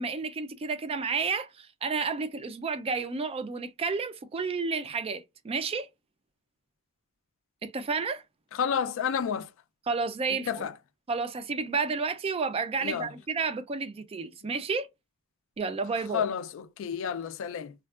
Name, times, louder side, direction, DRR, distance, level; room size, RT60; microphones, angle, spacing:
voice 1, 0.0-5.9 7.6-8.2 9.9-10.7 11.1-14.9 15.6-16.2, right 4 dB, 25° right, 0.3 m, -31 dB
voice 2, 8.5-9.5 10.5-10.7 12.8-13.1 16.1-17.7, left 7 dB, 65° left, 0.3 m, -30 dB
3.4 x 2.2 x 2.3 m
head